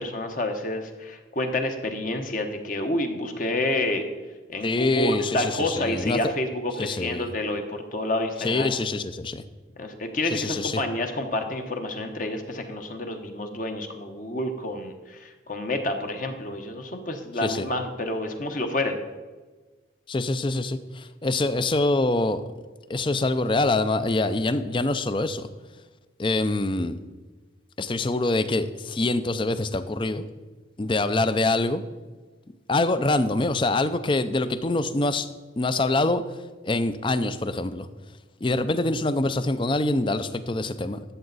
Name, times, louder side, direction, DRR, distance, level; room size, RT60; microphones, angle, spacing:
voice 1, 0.0-4.0 4.5-8.7 9.8-19.0, left 1 dB, 45° left, 5 dB, 1.0 m, -29 dB
voice 2, 4.6-6.3 6.8-7.3 8.4-9.4 10.2-10.8 17.4-17.7 20.1-22.4 22.9-25.5 26.2-27.0 27.8-30.3 30.8-31.8 32.7-35.3 35.6-36.2 36.6-37.9 38.4-41.0, left 2 dB, 25° left, 12 dB, 0.4 m, -25 dB
12.5 x 7.6 x 4.0 m, 1.3 s
head